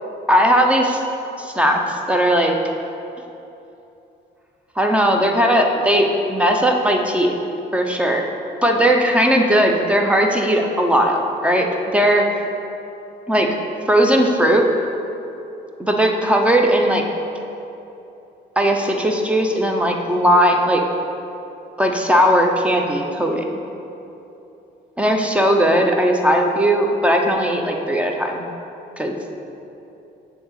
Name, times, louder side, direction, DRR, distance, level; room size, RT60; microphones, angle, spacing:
voice 1, 0.3-1.0 1.4-2.6 4.8-7.4 7.7-8.3 8.6-12.3 13.3-13.5 13.9-14.7 15.8-17.0 18.6-20.8 21.8-23.5 25.0-28.4 29.0-29.1, equal, 5° right, 2 dB, 0.8 m, -17 dB
7.8 x 3.8 x 6.5 m, 2.9 s
cardioid pair, 90°, 20 cm